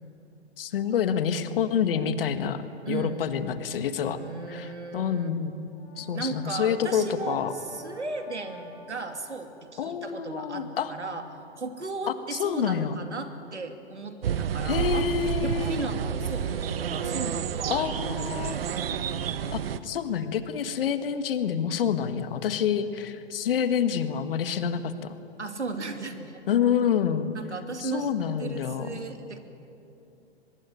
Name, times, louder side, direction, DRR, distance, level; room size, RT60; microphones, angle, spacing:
voice 1, 0.6-4.2 4.5-5.5 6.0-7.5 9.8-10.9 12.3-12.9 14.7-15.8 17.7-18.6 19.5-25.1 26.5-27.3 27.8-29.0, left 8 dB, 55° left, 10 dB, 1.7 m, -27 dB
voice 2, 2.8-3.3 4.1-5.3 5.9-11.2 11.6-15.1 15.4-18.7 25.4-26.4 27.3-29.4, right 3 dB, 85° right, 6 dB, 2.8 m, -36 dB
Brass instrument, 5.5-9.8, left 1 dB, 85° left, 7.5 m, -50 dB
sound 1, 14.2-19.8, right 8 dB, 55° right, 1.2 m, -30 dB
24.0 x 21.5 x 9.2 m, 2.8 s
figure-of-eight pair, 120°, 34 cm